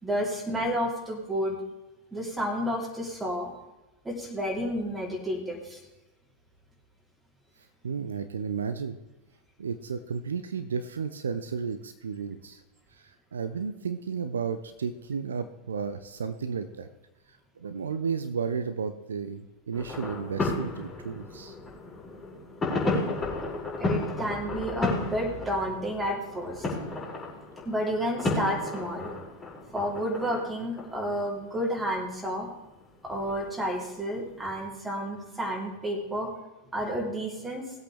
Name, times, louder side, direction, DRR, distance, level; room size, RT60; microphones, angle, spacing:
voice 1, 0.0-1.6 2.1-3.5 4.0-5.8 23.8-26.6 27.6-29.1 29.7-32.5 33.0-36.3 36.7-37.6, equal, 10° right, -1 dB, 3.3 m, -31 dB
voice 2, 7.8-9.0 9.6-12.6 12.9-16.9 17.3-21.6, right 6 dB, 70° right, 10 dB, 0.7 m, -33 dB
sound 1, 19.7-32.3 32.8-33.6 34.3-34.4, left 2 dB, 20° left, 5.0 m, -33 dB
19.5 x 8.2 x 3.5 m, 1.0 s
figure-of-eight pair, 90°, 0 cm